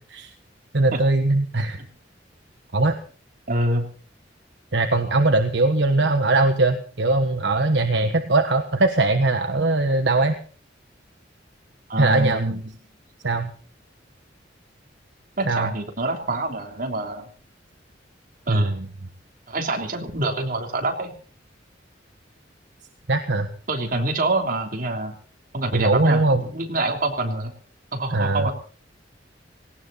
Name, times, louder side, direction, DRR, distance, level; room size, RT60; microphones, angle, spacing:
voice 1, 0.7-1.8 2.7-3.0 4.7-10.3 12.0-12.5 13.2-13.5 15.5-15.7 18.5-18.9 23.1-23.5 25.7-26.4 28.1-28.5, right 2 dB, 65° right, 6 dB, 1.3 m, -20 dB
voice 2, 3.5-3.9 11.9-12.6 15.4-17.3 18.5-18.7 19.5-21.1 23.7-25.2 25.5-27.5 27.9-28.5, right 2 dB, 50° right, 3 dB, 3.3 m, -26 dB
18.5 x 17.5 x 4.2 m, 0.41 s
head